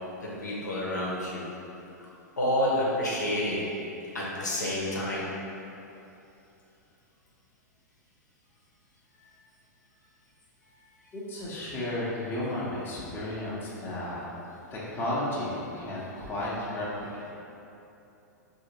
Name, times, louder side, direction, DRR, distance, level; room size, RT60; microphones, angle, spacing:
voice 1, 0.2-1.4 2.4-3.6 4.1-5.3 9.2-9.3, left 1 dB, 80° left, -6 dB, 0.9 m, -29 dB
voice 2, 11.1-17.3, left 1 dB, 20° left, -7 dB, 1.0 m, -33 dB
4.8 x 2.8 x 3.0 m, 2.8 s
figure-of-eight pair, 100°, 10 cm